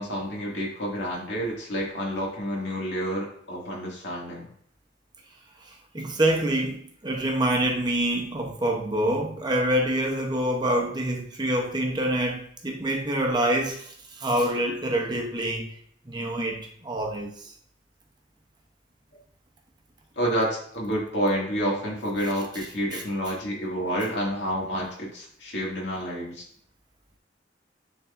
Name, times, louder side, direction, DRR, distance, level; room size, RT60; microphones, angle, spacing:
voice 1, 0.0-4.5 20.2-20.5 20.7-26.5, equal, 75° left, 2.1 m, -29 dB
voice 2, 5.9-13.9 14.2-15.7 16.1-17.3 22.9-23.0, right 1 dB, 25° right, 0.9 m, -26 dB
9.5 x 3.8 x 2.6 m
head